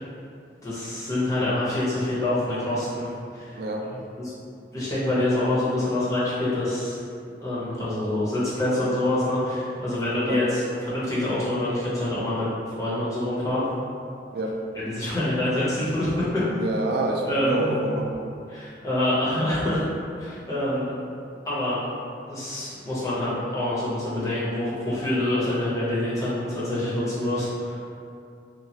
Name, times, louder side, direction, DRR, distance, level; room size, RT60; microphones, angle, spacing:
voice 1, 0.6-3.6 4.2-4.3 4.7-7.0 7.4-13.6 14.7-16.4 17.2-17.7 18.5-19.9 20.2-20.9 21.4-21.9 22.3-27.8, left 1 dB, 15° left, -9 dB, 0.6 m, -26 dB
voice 2, 16.5-18.1, right 2 dB, 55° right, 0 dB, 0.3 m, -27 dB
2.8 x 2.3 x 2.8 m, 2.5 s
head